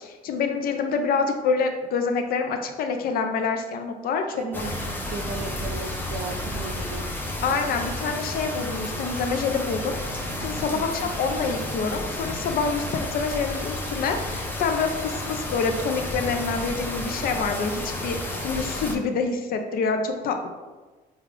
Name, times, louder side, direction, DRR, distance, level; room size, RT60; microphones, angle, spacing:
voice 1, 0.0-4.7 7.4-20.5, left 4 dB, 60° left, 5 dB, 0.6 m, -27 dB
voice 2, 4.4-7.1 10.7-11.1, right 5 dB, 45° right, 6 dB, 0.4 m, -36 dB
sound 1, 4.5-19.0, left 1 dB, 10° left, 0.6 m, -31 dB
5.0 x 2.4 x 3.3 m, 1.3 s
cardioid pair, 110°, 17 cm